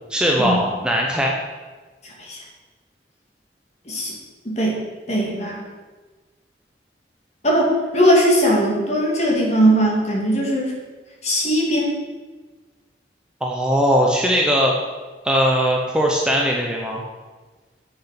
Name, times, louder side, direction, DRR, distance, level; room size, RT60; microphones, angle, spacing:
voice 1, 0.1-1.3 13.4-14.7 15.2-17.0, equal, 5° right, -1 dB, 0.8 m, -19 dB
voice 2, 4.4-4.8 5.1-5.6 7.4-10.7 11.2-11.9, equal, 40° left, -2 dB, 2.4 m, -19 dB
8.0 x 7.0 x 5.9 m, 1.3 s
head